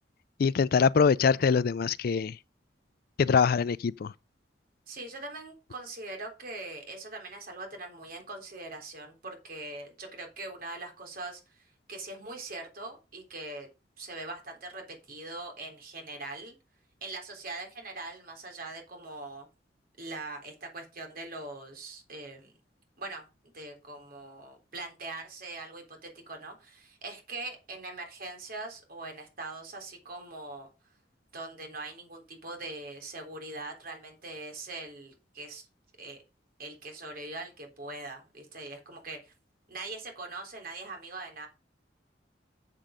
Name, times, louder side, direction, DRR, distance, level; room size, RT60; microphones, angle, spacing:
voice 1, 0.4-2.4 3.2-4.1, left 5 dB, 60° left, 0.4 m, -24 dB
voice 2, 4.9-13.7 14.0-16.6 17.0-19.5 20.0-22.5 23.0-30.7 31.3-35.7 36.0-36.2 36.6-39.3 39.7-41.5, right 2 dB, 55° right, 3.5 m, -42 dB
7.5 x 7.4 x 5.1 m
head